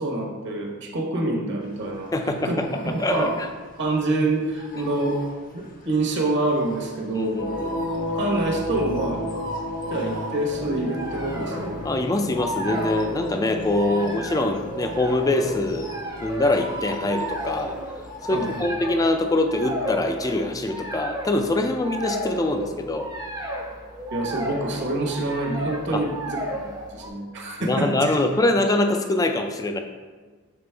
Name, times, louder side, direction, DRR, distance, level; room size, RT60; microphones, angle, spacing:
voice 1, 0.0-2.6 3.1-3.4 3.8-5.2 5.5-7.4 8.1-9.2 9.9-11.9 18.3-18.7 24.1-28.2, right 2 dB, 55° right, 0 dB, 1.0 m, -26 dB
sound 1, 1.6-18.7, equal, 40° left, 0.7 m, -41 dB
voice 2, 2.1-3.5 7.1-7.7 11.8-15.9 16.2-17.7 18.2-23.1 25.9-26.1 27.6-29.8, left 2 dB, 15° left, 5 dB, 0.4 m, -24 dB
sound 2, 7.4-17.7, left 1 dB, 80° left, 0.6 m, -33 dB
sound 3, 10.0-27.1, right 1 dB, 20° right, 0.7 m, -34 dB
6.8 x 4.0 x 3.4 m, 1.4 s
head